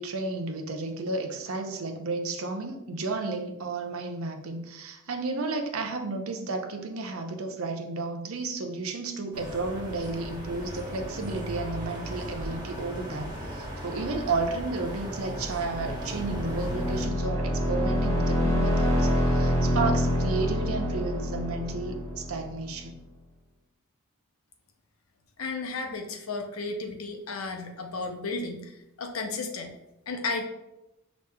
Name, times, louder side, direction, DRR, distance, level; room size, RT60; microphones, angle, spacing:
voice 1, 0.0-23.0, right 3 dB, 85° right, 4 dB, 0.6 m, -32 dB
sound 1, 9.3-17.0, equal, 20° right, 1.1 m, -37 dB
sound 2, 15.2-22.9, equal, 15° left, 0.8 m, -27 dB
voice 2, 25.4-29.8 30.1-30.4, left 3 dB, 85° left, 4 dB, 0.7 m, -33 dB
6.2 x 3.0 x 2.2 m, 0.90 s
head